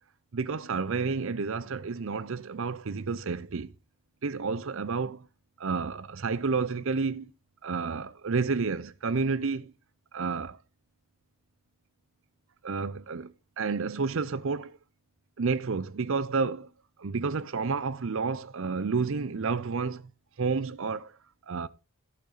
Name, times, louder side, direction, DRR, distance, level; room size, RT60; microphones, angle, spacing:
voice 1, 0.3-3.7 4.2-5.2 5.6-7.3 7.6-9.7 10.1-10.6 12.6-14.8 15.4-16.7 17.0-20.1 20.4-21.1 21.5-21.7, right 4 dB, 65° right, 0.6 m, -30 dB
15.0 x 6.6 x 4.0 m
head